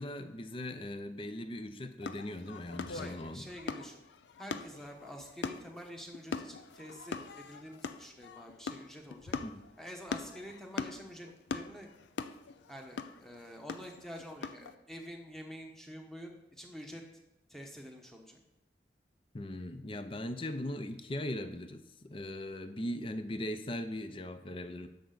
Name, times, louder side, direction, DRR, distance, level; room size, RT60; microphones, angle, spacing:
voice 1, 0.0-3.5 9.4-9.6 19.3-24.9, left 1 dB, 30° left, 10 dB, 0.5 m, -39 dB
sound 1, 2.0-14.7, left 5 dB, 85° left, 0.5 m, -42 dB
voice 2, 2.9-4.0 4.4-9.3 9.8-11.9 12.7-17.0 17.5-18.4, equal, ahead, 2 dB, 1.1 m, -47 dB
11.0 x 6.8 x 4.0 m, 0.92 s
head